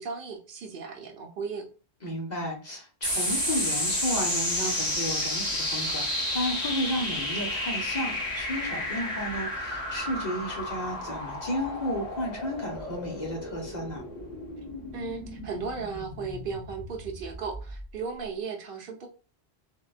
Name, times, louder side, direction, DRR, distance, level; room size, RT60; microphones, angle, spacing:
voice 1, 0.0-1.7 14.9-19.1, right 5 dB, 60° right, 2 dB, 0.7 m, -36 dB
voice 2, 2.0-14.0, equal, 45° left, -1 dB, 0.7 m, -33 dB
sound 1, 3.0-17.8, left 1 dB, 25° left, 1.6 m, -32 dB
3.6 x 2.1 x 2.3 m, 0.37 s
omnidirectional pair, 1.1 m